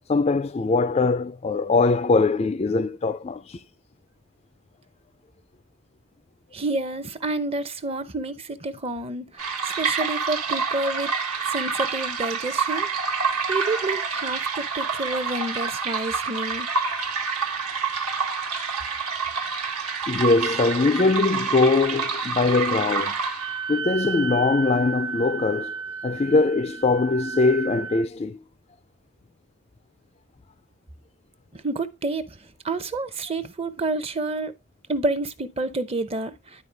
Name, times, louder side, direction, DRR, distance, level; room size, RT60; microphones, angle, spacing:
voice 1, 0.1-3.6 20.1-23.2 23.7-25.7 26.0-28.4, left 3 dB, 25° left, 0.3 m, -22 dB
voice 2, 6.5-11.1 11.5-12.9 13.5-16.7 31.5-32.4 32.6-34.5 34.9-36.3, right 2 dB, 25° right, 0.6 m, -29 dB
sound 1, 9.4-23.7, right 5 dB, 85° right, 1.6 m, -27 dB
Wind instrument woodwind instrument, 23.3-28.0, right 5 dB, 55° right, 0.8 m, -33 dB
11.0 x 4.4 x 3.3 m
head